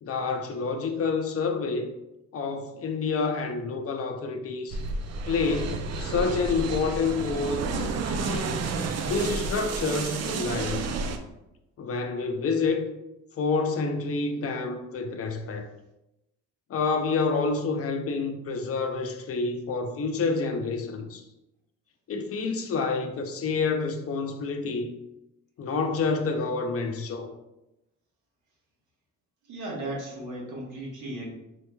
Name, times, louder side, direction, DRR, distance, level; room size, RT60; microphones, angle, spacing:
voice 1, 0.0-1.9 2.3-4.8 5.3-8.6 9.0-10.8 11.8-12.8 13.4-15.7 16.7-21.2 22.1-24.9 25.6-27.3, left 4 dB, 50° left, 0.5 m, -28 dB
sound 1, 4.7-11.2, right 4 dB, 60° right, 0.5 m, -31 dB
voice 2, 29.5-31.3, right 1 dB, 80° right, 1.2 m, -35 dB
4.4 x 3.0 x 2.2 m
cardioid pair, 90°, 30 cm